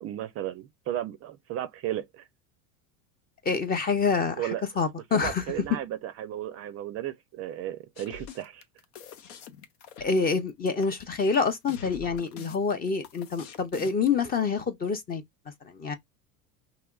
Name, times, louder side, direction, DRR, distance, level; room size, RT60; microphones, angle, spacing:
voice 1, 0.0-2.3 4.4-4.6 5.1-8.6, right 12 dB, 35° right, 0.4 m, -34 dB
voice 2, 3.4-4.5 4.8-5.4 10.0-15.2 15.6-15.9, left 5 dB, 25° left, 0.5 m, -27 dB
sound 1, 8.0-14.1, left 7 dB, 85° left, 0.9 m, -45 dB
4.8 x 2.9 x 2.3 m
supercardioid pair, 120°, 41 cm